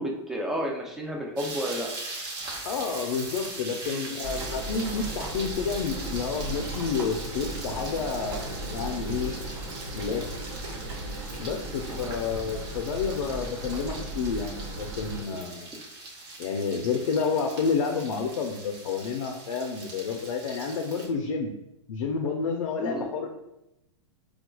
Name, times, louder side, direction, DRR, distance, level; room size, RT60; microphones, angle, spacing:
voice 1, 0.0-1.9 3.9-4.1 11.9-12.1 22.8-23.0, equal, ahead, -1 dB, 0.4 m, -31 dB
sound 1, 1.4-21.1, right 2 dB, 25° right, 0.8 m, -41 dB
voice 2, 2.6-9.3 9.9-10.3 11.4-15.7 16.4-21.5 21.9-23.3, left 5 dB, 85° left, 3 dB, 0.5 m, -30 dB
sound 2, 4.2-15.2, right 1 dB, 85° right, 1.0 m, -36 dB
4.3 x 2.3 x 2.2 m, 0.90 s
supercardioid pair, 155°, 16 cm